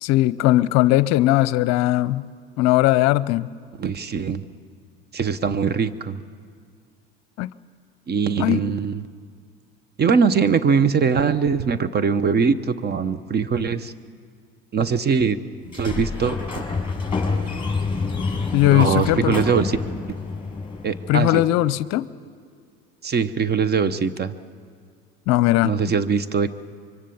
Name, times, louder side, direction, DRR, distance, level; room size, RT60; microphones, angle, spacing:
voice 1, 0.0-2.3 2.6-3.5 7.4-7.5 8.4-8.6 18.5-19.4 21.1-22.1 25.3-25.7, left 16 dB, 55° left, 18 dB, 0.7 m, -19 dB
voice 2, 3.8-4.4 5.1-6.2 8.1-9.0 10.0-13.9 14.7-15.4 15.7-16.6 18.7-19.8 20.8-21.4 23.0-24.3 25.6-26.5, right 6 dB, 30° right, 14 dB, 1.0 m, -21 dB
Sliding door, 15.6-21.3, left 4 dB, 15° left, 6.4 m, -27 dB
24.5 x 24.0 x 7.1 m, 2.1 s
hypercardioid pair, 80°, 31 cm